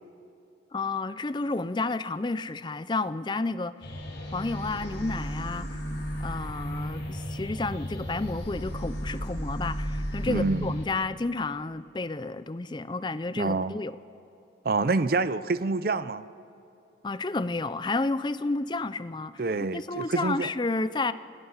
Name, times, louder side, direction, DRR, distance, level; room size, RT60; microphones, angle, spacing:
voice 1, 0.7-3.7 4.3-5.8 6.2-13.9 17.0-19.4 19.7-21.1, left 3 dB, 25° left, 0.4 m, -31 dB
sound 1, 3.8-10.9, equal, 80° left, 5.2 m, -34 dB
voice 2, 10.3-10.7 13.4-13.7 14.6-16.3 19.4-20.5, right 3 dB, 50° right, 0.5 m, -27 dB
27.5 x 18.5 x 5.7 m
head